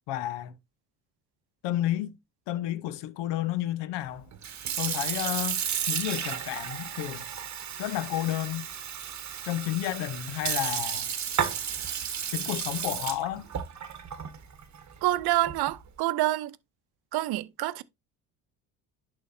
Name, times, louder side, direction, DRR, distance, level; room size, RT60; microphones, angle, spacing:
voice 1, 0.1-0.6 1.6-2.2 2.5-4.3 4.8-5.6 5.9-7.2 7.8-8.7 9.4-11.1 12.3-13.5, left 13 dB, 70° left, 0.9 m, -31 dB
Sink (filling or washing) / Fill (with liquid), 4.3-15.9, right 8 dB, 40° right, 1.2 m, -33 dB
voice 2, 15.0-16.6 17.1-17.8, right 16 dB, 60° right, 0.7 m, -27 dB
11.0 x 3.9 x 2.7 m
hypercardioid pair, 65°, 44 cm